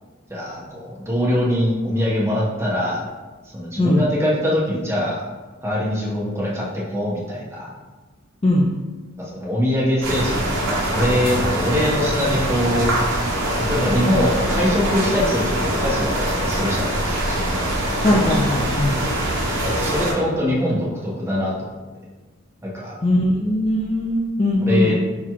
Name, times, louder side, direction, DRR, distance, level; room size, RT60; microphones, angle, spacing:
voice 1, 0.3-3.0 3.5-5.2 5.6-7.7 9.2-12.9 13.6-18.1 19.7-21.7 22.6-22.9 24.6-24.9, left 1 dB, 10° right, -7 dB, 0.9 m, -23 dB
sound 1, 10.0-20.1, right 1 dB, 60° right, 0.8 m, -23 dB
voice 2, 18.0-19.0 23.0-24.9, left 1 dB, 25° left, -3 dB, 0.3 m, -19 dB
5.8 x 2.4 x 2.9 m, 1.3 s
head